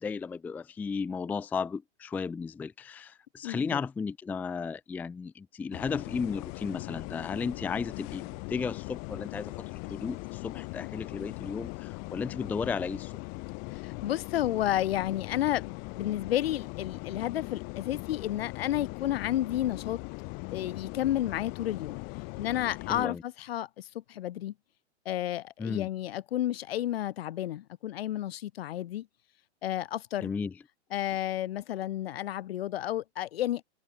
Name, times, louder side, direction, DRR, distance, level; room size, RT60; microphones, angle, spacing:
voice 1, 0.0-13.1 22.9-23.2 25.6-25.9 30.2-30.5, left 5 dB, 5° left, 0.6 m, -34 dB
voice 2, 3.4-3.8 13.7-20.0 20.5-22.0 22.3-24.5 25.1-29.1 29.6-30.3 30.9-33.6, left 13 dB, 60° left, 2.4 m, -31 dB
sound 1, 5.7-23.1, left 36 dB, 25° left, 1.1 m, -40 dB
hypercardioid pair, 160°, 34 cm